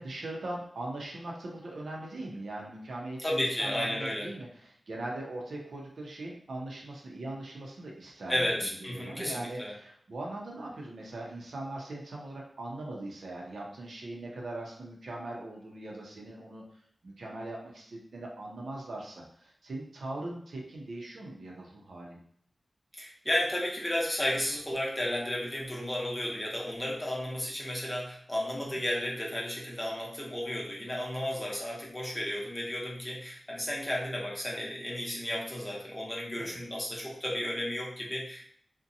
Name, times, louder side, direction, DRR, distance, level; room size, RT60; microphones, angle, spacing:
voice 1, 0.0-8.5 8.8-16.6 17.0-22.2 28.7-28.8 36.4-36.6, right 2 dB, 85° right, -2 dB, 0.6 m, -40 dB
voice 2, 3.2-4.3 8.3-9.7 23.0-38.5, left 1 dB, 20° left, -3 dB, 0.7 m, -33 dB
2.7 x 2.1 x 2.6 m, 0.64 s
wide cardioid pair, 65°, 0 cm